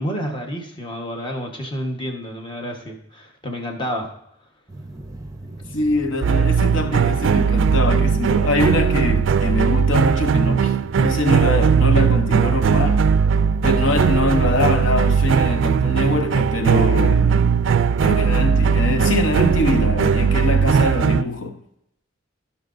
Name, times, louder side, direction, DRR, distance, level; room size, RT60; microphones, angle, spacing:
voice 1, 0.0-4.1, equal, 25° left, 1.2 m, -29 dB
sound 1, 4.7-19.4, right 1 dB, 15° right, 0.6 m, -38 dB
voice 2, 5.7-13.1 13.6-17.6 18.0-21.6, left 2 dB, 65° left, 0.9 m, -23 dB
sound 2, 6.2-21.2, right 6 dB, 65° right, 0.3 m, -18 dB
17.0 x 5.8 x 2.6 m
head